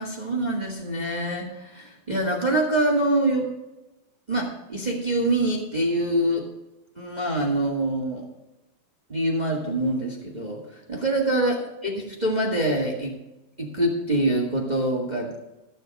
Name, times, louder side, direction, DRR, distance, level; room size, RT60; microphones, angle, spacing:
voice 1, 0.0-3.5 4.3-6.5 6.9-8.2 9.1-11.9 12.2-13.1 13.6-15.3, right 1 dB, 25° right, -1 dB, 0.8 m, -25 dB
14.5 x 7.5 x 5.3 m, 1.0 s
omnidirectional pair, 4.1 m